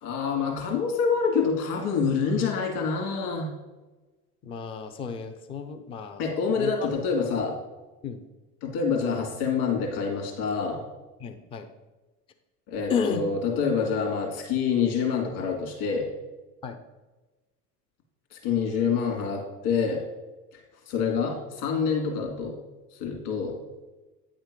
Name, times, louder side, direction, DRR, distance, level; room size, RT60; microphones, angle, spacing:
voice 1, 0.0-3.5 6.2-7.6 8.6-10.8 12.7-16.1 18.3-20.0 20.5-20.6 20.9-22.5 23.0-23.5, left 5 dB, 60° left, 0 dB, 2.2 m, -26 dB
voice 2, 4.4-6.9 8.0-8.2 11.2-11.7 12.9-13.2 16.6-16.8, left 6 dB, 15° left, 7 dB, 0.3 m, -32 dB
9.2 x 3.7 x 5.0 m, 1.2 s
figure-of-eight pair, 75°, 49 cm